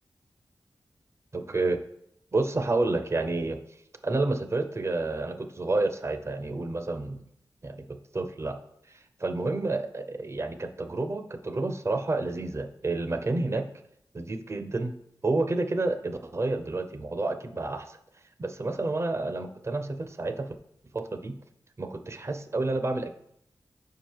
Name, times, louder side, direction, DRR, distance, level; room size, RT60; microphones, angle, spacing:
voice 1, 1.3-1.8 2.3-3.6 4.0-7.2 7.6-7.7 8.1-8.6 9.2-13.7 14.1-14.9 15.2-18.0 18.4-20.5 20.9-21.3 21.8-23.1, right 2 dB, 35° right, 7 dB, 0.6 m, -29 dB
4.9 x 4.6 x 4.6 m, 0.74 s
wide cardioid pair, 75°, 8 cm